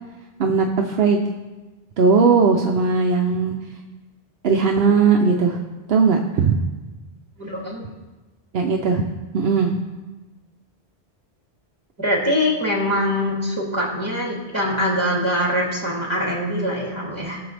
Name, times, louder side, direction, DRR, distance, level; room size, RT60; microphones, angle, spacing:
voice 1, 0.4-1.2 2.0-3.6 4.4-5.6 5.9-6.6 8.5-9.0 9.3-9.8, right 5 dB, 70° right, 2 dB, 0.9 m, -18 dB
voice 2, 7.4-7.8 12.0-17.4, equal, 25° right, -3 dB, 2.8 m, -23 dB
18.0 x 7.0 x 3.4 m, 1.2 s
omnidirectional pair, 1.1 m